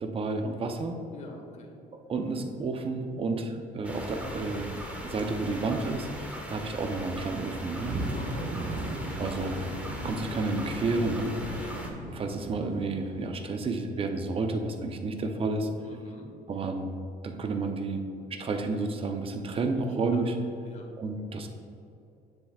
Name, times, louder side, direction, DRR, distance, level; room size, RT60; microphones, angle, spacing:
voice 1, 0.0-1.0 2.1-7.9 9.2-9.6 10.0-11.3 12.1-15.7 16.5-16.9 17.2-18.0 18.3-20.4 21.0-21.5, right 3 dB, 35° right, 5 dB, 0.7 m, -31 dB
voice 2, 1.1-1.8 8.1-9.4 11.5-11.9 15.8-16.3 19.8-20.0 20.6-20.9, left 1 dB, 45° left, 1 dB, 1.4 m, -45 dB
sound 1, 3.8-11.9, equal, 10° right, 1.1 m, -39 dB
sound 2, 7.8-13.5, right 1 dB, 50° right, 1.1 m, -37 dB
9.9 x 7.0 x 2.4 m, 2.7 s
cardioid pair, 110°, 17 cm